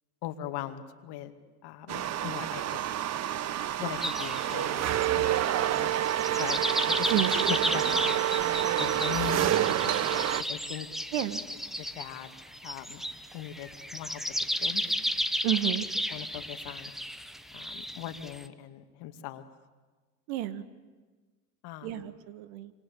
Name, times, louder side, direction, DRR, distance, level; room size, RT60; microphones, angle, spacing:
voice 1, 0.2-1.3 1.6-2.9 3.8-4.8 5.1-5.9 6.4-7.1 7.5-8.2 8.8-9.8 10.1-10.2 10.5-10.9 11.8-12.4 12.6-13.0 13.3-14.2 14.6-14.8 16.1-16.9 17.5-19.4 21.6-22.0, left 12 dB, 55° left, 8 dB, 2.3 m, -40 dB
sound 1, 1.9-10.4, right 11 dB, 35° right, 1.0 m, -28 dB
sound 2, 4.0-18.5, equal, ahead, 1.3 m, -34 dB
voice 2, 15.4-15.9 20.3-20.6 21.8-22.7, right 13 dB, 65° right, 13 dB, 1.8 m, -30 dB
26.0 x 25.5 x 8.6 m, 1.3 s
hypercardioid pair, 90°, 46 cm